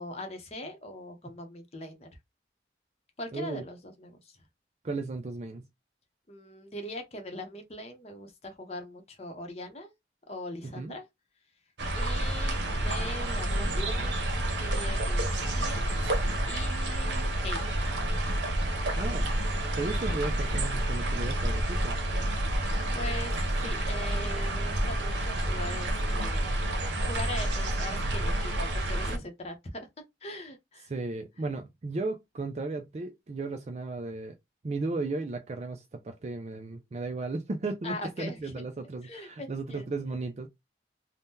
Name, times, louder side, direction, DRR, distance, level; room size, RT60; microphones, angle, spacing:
voice 1, 0.0-2.1 3.2-4.2 6.3-9.9 10.3-11.0 11.9-12.6 12.8-14.2 14.6-17.9 22.9-26.6 27.0-29.9 30.2-30.9 37.8-38.7 39.0-39.9, left 1 dB, 35° left, 0.7 m, -41 dB
voice 2, 3.3-3.6 4.8-5.6 10.6-11.0 19.0-19.5 19.7-22.0 30.9-34.4 34.6-40.5, right 3 dB, 35° right, 0.4 m, -35 dB
sound 1, 11.8-29.2, right 1 dB, 75° right, 0.8 m, -29 dB
2.8 x 2.1 x 3.5 m
head